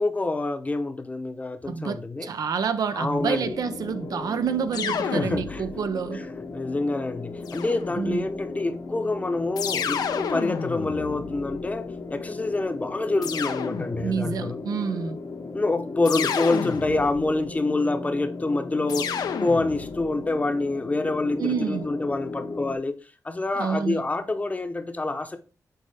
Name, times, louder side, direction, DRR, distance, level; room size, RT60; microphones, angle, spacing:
voice 1, 0.0-2.3 2.9-3.6 5.1-5.6 6.1-6.2 6.5-11.8 12.1-14.6 15.5-19.1 19.4-21.4 21.7-22.9 23.2-25.4, left 2 dB, 20° left, 0.8 m, -27 dB
voice 2, 1.7-6.3 8.0-8.3 14.0-15.2 21.4-21.9 23.6-24.0, right 6 dB, 70° right, 0.5 m, -28 dB
sound 1, 3.2-22.8, left 3 dB, 55° left, 0.8 m, -36 dB
sound 2, 4.7-5.9 7.5-8.3 9.6-11.9 13.2-14.3 16.1-17.4 18.9-20.1, left 6 dB, 90° left, 0.6 m, -31 dB
6.8 x 4.3 x 3.4 m
wide cardioid pair, 105°, 7 cm